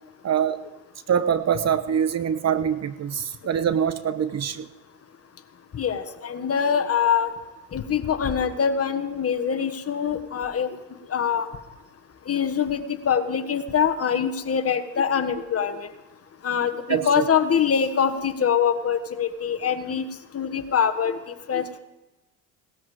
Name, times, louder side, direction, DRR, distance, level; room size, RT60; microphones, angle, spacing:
voice 1, 0.2-0.6 1.1-4.7 16.9-17.3, right 8 dB, 40° right, 12 dB, 1.0 m, -24 dB
voice 2, 5.7-7.3 7.7-10.8 11.1-11.5 12.3-15.9 16.4-20.0 20.3-21.8, left 7 dB, 35° left, 9 dB, 1.5 m, -24 dB
18.0 x 13.0 x 5.0 m, 1.1 s
hypercardioid pair, 75°, 41 cm